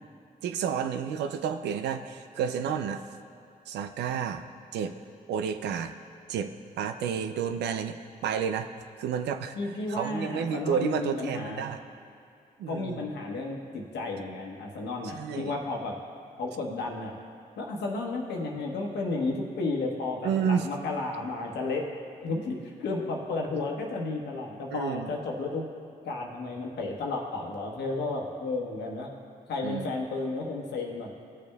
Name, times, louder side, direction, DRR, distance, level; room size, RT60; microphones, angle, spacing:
voice 1, 0.4-3.0 3.7-4.4 4.7-5.0 5.3-5.9 6.3-8.0 8.2-8.7 9.0-9.6 9.9-11.8 12.6-13.0 15.0-15.5 20.2-20.7 24.7-25.1 29.6-29.9, right 7 dB, 90° right, 8 dB, 0.4 m, -30 dB
voice 2, 9.6-11.7 12.7-15.9 16.4-17.1 17.6-21.8 22.2-25.7 26.0-29.1 29.5-31.2, left 3 dB, 85° left, 0 dB, 1.2 m, -33 dB
16.5 x 6.7 x 2.3 m, 2.6 s
supercardioid pair, 50°, 17 cm